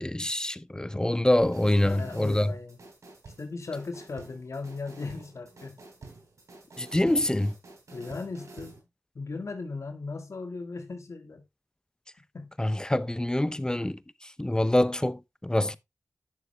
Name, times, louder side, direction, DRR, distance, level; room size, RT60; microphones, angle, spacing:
voice 1, 0.0-2.5 6.8-7.5 12.6-15.8, left 1 dB, 15° left, 0.7 m, -26 dB
sound 1, 1.4-8.8, right 3 dB, 90° right, 3.4 m, -48 dB
voice 2, 1.8-2.8 3.4-5.8 7.9-8.8 9.2-11.4 12.3-12.5, left 3 dB, 70° left, 1.9 m, -37 dB
10.5 x 6.7 x 3.3 m
wide cardioid pair, 55°, 5 cm